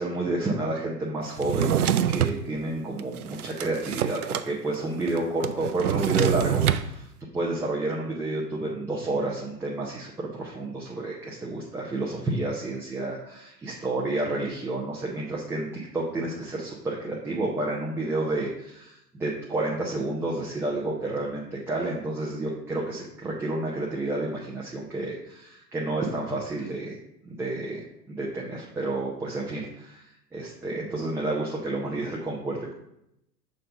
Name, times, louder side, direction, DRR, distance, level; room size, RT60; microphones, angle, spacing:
voice 1, 0.0-7.1 7.3-15.7 15.9-26.9 27.2-27.8 28.1-32.7, right 2 dB, 5° right, -5 dB, 0.7 m, -30 dB
Drawer open or close, 1.4-2.4 3.0-4.5 4.7-4.8 5.1-6.9, right 10 dB, 60° right, 0.6 m, -25 dB
6.6 x 4.0 x 5.4 m, 0.80 s
figure-of-eight pair, 100°, 50 cm